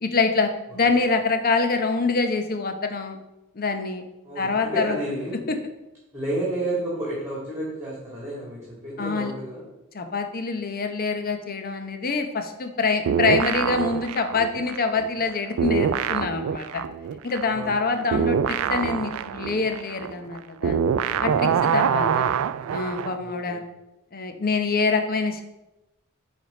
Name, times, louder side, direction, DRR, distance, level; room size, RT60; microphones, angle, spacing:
voice 1, 0.0-3.2 3.5-4.0 4.4-5.0 5.5-5.6 9.0-9.3 9.9-16.8 17.2-20.8 21.2-22.2 22.7-23.6 24.1-25.4, left 4 dB, 45° left, 7 dB, 0.8 m, -25 dB
voice 2, 4.2-5.4 6.1-9.7 17.5-18.1 21.2-21.7 23.2-23.6, right 1 dB, 10° right, -6 dB, 1.9 m, -31 dB
sound 1, 13.1-15.3 15.6-23.2, right 7 dB, 70° right, 0.3 m, -25 dB
9.1 x 3.5 x 5.2 m, 0.96 s
head